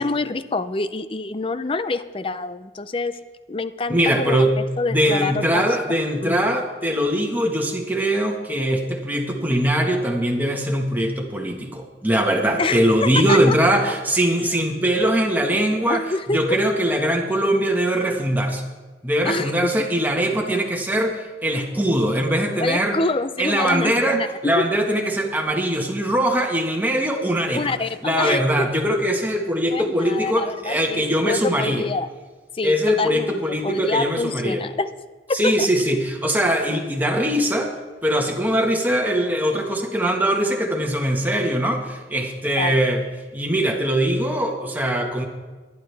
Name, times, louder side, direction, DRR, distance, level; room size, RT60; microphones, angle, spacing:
voice 1, 0.0-3.2 3.5-5.6 6.2-6.4 12.6-13.5 14.5-14.6 15.9-16.6 19.2-19.5 22.6-24.6 27.5-28.7 29.7-32.1 32.5-34.9 35.3-35.7 42.6-42.8, left 3 dB, 30° left, 13 dB, 0.5 m, -26 dB
voice 2, 3.9-4.5 4.9-16.0 16.3-18.6 19.0-23.0 23.4-27.7 28.0-31.9 32.6-34.6 35.3-37.7 38.0-43.0 43.3-45.3, right 1 dB, 10° right, 1 dB, 1.6 m, -21 dB
22.0 x 11.0 x 3.5 m, 1.3 s
head